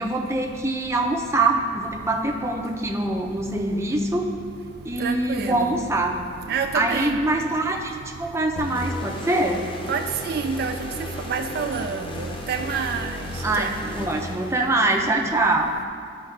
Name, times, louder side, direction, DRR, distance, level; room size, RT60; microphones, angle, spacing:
voice 1, 0.0-4.2 4.8-6.1 6.7-9.6 13.4-15.7, right 2 dB, 15° right, 2 dB, 0.6 m, -24 dB
voice 2, 5.0-5.7 6.5-7.2 9.9-10.9 11.3-13.2 13.6-13.7, right 6 dB, 55° right, 6 dB, 0.3 m, -28 dB
sound 1, 8.6-15.0, left 1 dB, 30° left, 0.6 m, -34 dB
12.0 x 4.7 x 3.3 m, 2.2 s
head